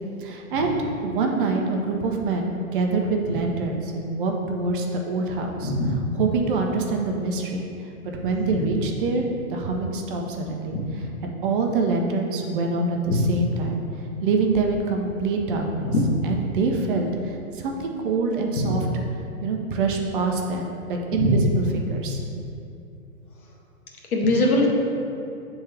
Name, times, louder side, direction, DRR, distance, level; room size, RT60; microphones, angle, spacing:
voice 1, 0.2-0.7 1.0-7.7 8.1-9.2 9.5-15.9 16.2-18.9 19.4-22.2, right 3 dB, 40° right, 2 dB, 0.7 m, -25 dB
voice 2, 5.6-5.9 10.7-10.9 13.1-13.2 15.8-16.0 18.5-18.7 21.2-21.3 24.1-24.7, left 2 dB, 90° left, -1 dB, 1.4 m, -21 dB
8.1 x 3.5 x 3.3 m, 2.7 s
hypercardioid pair, 140°, 43 cm